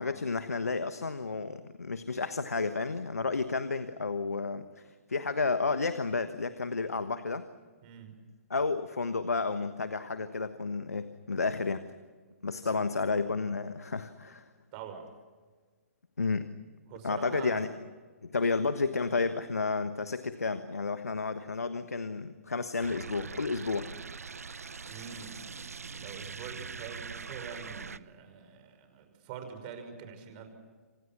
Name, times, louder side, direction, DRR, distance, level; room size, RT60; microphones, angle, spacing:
voice 1, 0.0-7.4 8.5-11.8 12.4-14.5 16.2-16.5 17.0-17.7 18.2-23.9, left 4 dB, 80° left, 11 dB, 1.3 m, -31 dB
voice 2, 7.8-8.2 12.6-12.8 14.7-15.1 16.9-17.7 24.9-25.4 25.9-30.5, right 7 dB, 35° right, 7 dB, 5.9 m, -45 dB
sound 1, 22.8-28.0, right 5 dB, 75° right, 0.8 m, -42 dB
28.0 x 27.0 x 6.1 m, 1.4 s
figure-of-eight pair, 125°, 8 cm